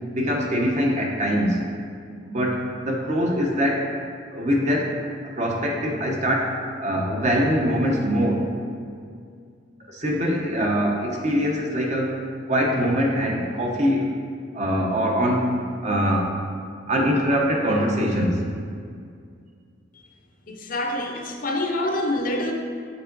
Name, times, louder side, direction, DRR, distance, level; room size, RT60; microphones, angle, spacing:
voice 1, 0.1-1.6 2.2-4.0 4.3-5.0 5.4-8.5 9.9-14.1 14.5-16.3 16.9-18.4, equal, 40° right, 0 dB, 0.8 m, -23 dB
voice 2, 20.5-22.5, left 1 dB, 45° left, 2 dB, 0.6 m, -26 dB
6.9 x 4.4 x 3.9 m, 2.2 s
head